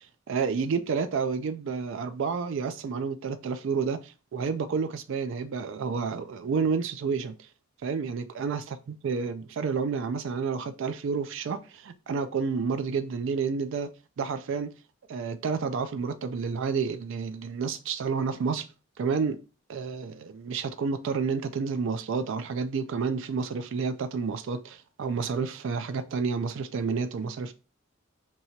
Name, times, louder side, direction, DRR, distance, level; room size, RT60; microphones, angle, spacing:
voice 1, 0.0-7.5 7.8-13.9 14.2-14.7 15.1-18.7 19.0-19.4 19.7-27.5, right 5 dB, 60° right, 0.3 m, -30 dB
4.6 x 2.8 x 2.8 m
head